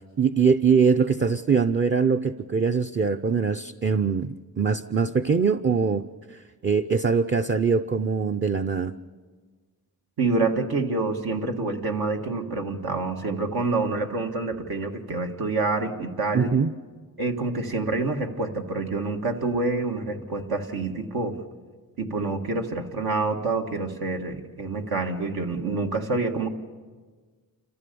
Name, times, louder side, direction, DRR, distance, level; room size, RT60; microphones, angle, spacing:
voice 1, 0.2-6.0 6.6-8.9 16.3-16.7, right 5 dB, 30° right, 6 dB, 0.6 m, -22 dB
voice 2, 10.2-16.5 17.2-21.4 22.0-26.5, right 3 dB, 80° right, 3 dB, 2.0 m, -27 dB
29.0 x 14.5 x 6.9 m, 1.5 s
cardioid pair, 85°, 37 cm